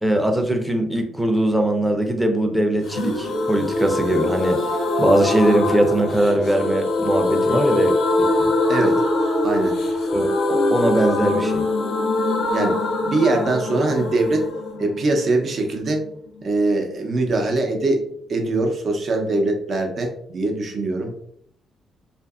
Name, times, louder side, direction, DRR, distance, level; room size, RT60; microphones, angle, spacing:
voice 1, 0.0-4.6 5.0-8.5 10.1-11.6, right 1 dB, 5° right, 4 dB, 0.5 m, -21 dB
sound 1, 2.9-16.5 16.7-16.8 17.1-17.2, left 2 dB, 70° left, 0.6 m, -23 dB
voice 2, 8.7-9.0 9.4-9.8 12.5-14.5 14.8-16.0 16.4-18.0 18.3-21.1, right 2 dB, 50° right, 2 dB, 0.6 m, -22 dB
2.7 x 2.5 x 2.3 m, 0.68 s
cardioid pair, 90°, 0 cm